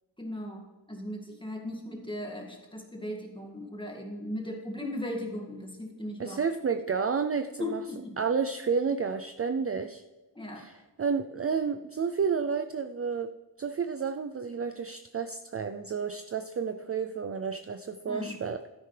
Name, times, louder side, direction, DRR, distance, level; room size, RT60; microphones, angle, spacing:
voice 1, 0.2-6.4 7.6-8.2 10.3-10.7 18.1-18.4, left 1 dB, 10° left, 1 dB, 2.0 m, -37 dB
voice 2, 6.2-7.8 8.2-10.0 10.6-13.3 13.6-18.6, right 6 dB, 35° right, 8 dB, 0.4 m, -31 dB
12.5 x 10.0 x 3.3 m, 1.2 s
wide cardioid pair, 125°, 42 cm